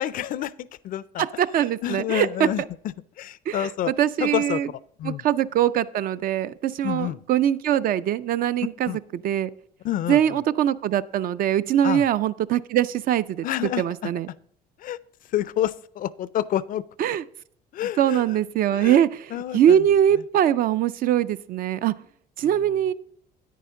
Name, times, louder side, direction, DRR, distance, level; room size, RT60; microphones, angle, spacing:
voice 1, 0.0-1.4 1.8-2.6 3.2-3.9 4.2-4.6 5.0-5.2 6.8-7.2 8.9-9.0 9.8-10.4 11.8-12.0 13.4-14.1 14.8-15.0 15.3-16.8 17.7-18.2 18.7-19.0 19.3-19.8, left 12 dB, 55° left, 19 dB, 0.4 m, -28 dB
voice 2, 1.2-2.5 3.5-4.7 5.0-9.5 10.1-13.5 13.8-14.3 17.0-17.2 18.0-21.9 22.4-22.9, right 10 dB, 55° right, 15 dB, 0.4 m, -22 dB
9.3 x 9.3 x 3.7 m, 0.64 s
cardioid pair, 110°, 17 cm